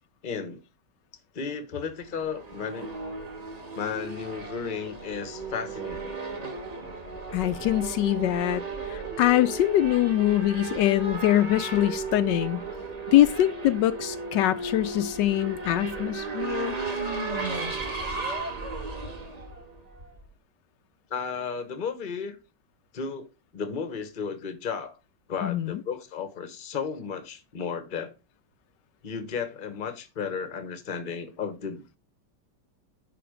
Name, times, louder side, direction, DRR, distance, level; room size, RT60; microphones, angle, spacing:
voice 1, 0.2-0.6 1.3-2.9 3.7-6.2 21.1-22.4 22.9-23.3 23.5-25.0 25.3-28.1 29.0-32.0, left 6 dB, 35° left, 1.0 m, -34 dB
Race car auto racing / Accelerating revving vroom, 2.1-20.3, right 3 dB, 20° right, 1.7 m, -35 dB
voice 2, 7.3-12.6 13.1-16.7 25.4-25.8, left 13 dB, 80° left, 1.2 m, -23 dB
10.0 x 3.9 x 4.9 m
omnidirectional pair, 2.0 m